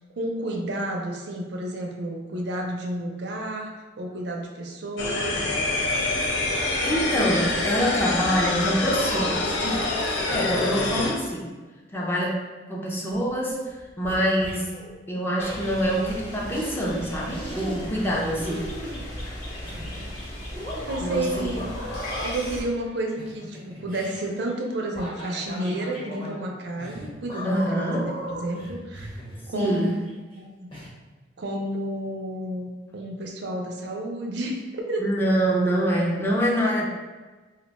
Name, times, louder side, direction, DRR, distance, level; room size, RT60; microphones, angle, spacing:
voice 1, 0.2-5.5 20.5-21.8 22.2-29.1 29.5-29.8 30.3-30.7 31.4-35.1, right 1 dB, 65° right, 1 dB, 0.5 m, -31 dB
sound 1, 5.0-11.1, left 2 dB, 80° left, 0.5 m, -26 dB
voice 2, 6.8-9.9 10.3-11.5 11.9-12.3 12.7-14.7 15.1-18.8 21.0-21.6 27.4-28.1 29.5-29.9 35.0-36.9, equal, 10° left, -3 dB, 0.5 m, -25 dB
sound 2, 13.1-13.4 13.6-14.9 16.1-16.2 16.5-16.7 17.3-18.1 18.3-21.7 22.8-30.4 30.7-30.9, equal, 30° left, 0.9 m, -39 dB
sound 3, 15.4-22.6, left 1 dB, 65° left, 0.9 m, -36 dB
2.5 x 2.1 x 4.0 m, 1.3 s
head